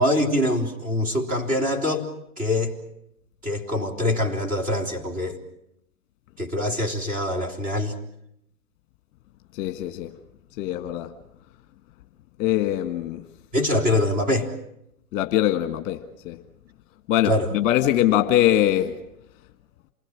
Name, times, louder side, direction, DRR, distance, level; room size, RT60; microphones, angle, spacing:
voice 1, 0.0-2.1 2.4-2.7 3.4-5.4 6.4-7.9 13.5-14.5 17.3-17.5, left 1 dB, 20° right, 3.7 m, -24 dB
voice 2, 9.6-10.1 10.6-11.1 12.4-13.2 15.1-16.0 16.3-16.4 17.1-18.9, left 12 dB, 35° left, 1.9 m, -22 dB
28.0 x 21.0 x 7.5 m
hypercardioid pair, 130°, 43 cm